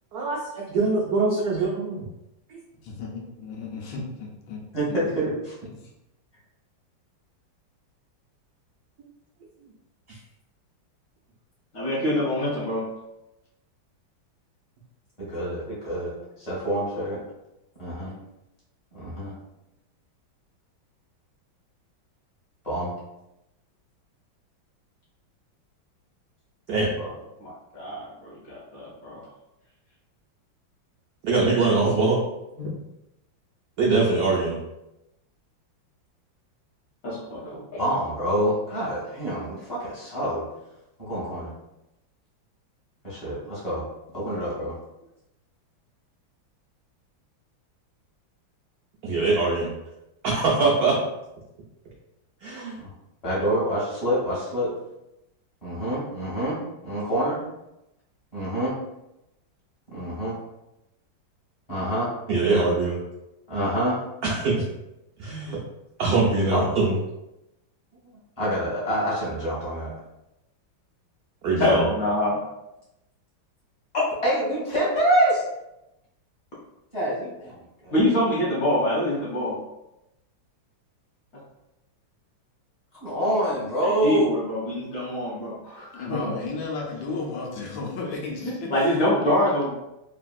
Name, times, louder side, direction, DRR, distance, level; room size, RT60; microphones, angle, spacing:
voice 1, 0.1-2.1 10.1-10.2 16.0-16.1 26.7-26.9 31.2-32.2 33.8-34.6 49.0-49.7 50.2-51.0 52.4-52.8 62.3-63.0 64.2-64.6 65.2-65.6 66.0-66.9 71.4-71.9, right 3 dB, 80° right, -3 dB, 0.8 m, -23 dB
voice 2, 2.8-4.6 4.9-5.0 5.7-5.9 85.9-89.3, left 3 dB, 80° left, -1 dB, 1.4 m, -34 dB
voice 3, 4.7-5.6 15.2-17.2 17.8-18.1 18.9-19.3 22.6-22.9 27.0-27.1 37.4-40.5 41.0-41.5 43.0-43.8 44.1-44.8 52.8-52.9 53.2-54.7 55.6-57.4 58.3-58.8 59.9-60.3 61.7-62.7 63.5-64.0 66.5-66.7 68.4-69.9 71.5-71.9 74.2-75.4 76.9-77.9 83.0-84.3, right 1 dB, 25° left, -8 dB, 1.1 m, -27 dB
voice 4, 11.7-12.8 27.4-29.2 32.6-32.7 37.0-37.4 37.7-37.8 71.6-72.4 77.9-79.6 83.8-86.4 88.4-89.7, left 1 dB, 55° left, -6 dB, 1.0 m, -25 dB
3.4 x 2.5 x 2.3 m, 0.91 s
omnidirectional pair, 2.2 m